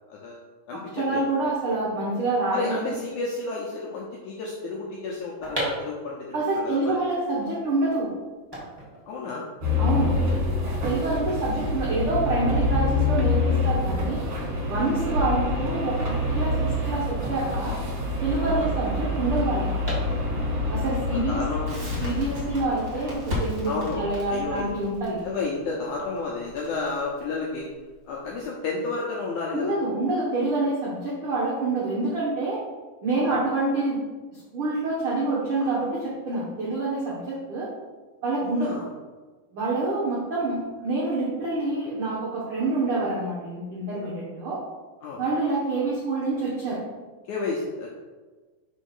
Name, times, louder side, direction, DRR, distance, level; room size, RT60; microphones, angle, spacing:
voice 1, 0.1-1.2 2.5-7.0 9.1-9.4 10.8-11.4 14.7-15.0 18.4-18.7 20.8-21.0 21.3-21.9 23.7-24.7 25.2-27.7 28.1-29.7 33.1-33.3 38.4-38.9 42.5-42.7 45.0-45.2 47.3-47.9, left 3 dB, 80° left, -3 dB, 1.7 m, -32 dB
voice 2, 1.0-2.9 6.3-8.1 9.8-10.1 10.8-14.2 14.7-17.8 18.2-19.7 20.7-21.4 22.0-25.2 29.5-32.6 33.0-34.1 34.3-37.7 38.2-38.8 39.5-44.6 45.2-46.8, right 2 dB, 85° right, -6 dB, 1.2 m, -27 dB
sound 1, 5.2-17.3 17.6-17.7 17.8-20.7 21.1-22.1 22.7-23.7 24.0-24.3, right 1 dB, 15° right, 0.8 m, -39 dB
sound 2, 9.6-24.8, left 2 dB, 55° right, 1.7 m, -27 dB
Crackle, 21.7-28.5, left 2 dB, 40° right, 1.4 m, -36 dB
5.2 x 4.1 x 5.5 m, 1.3 s
omnidirectional pair, 4.4 m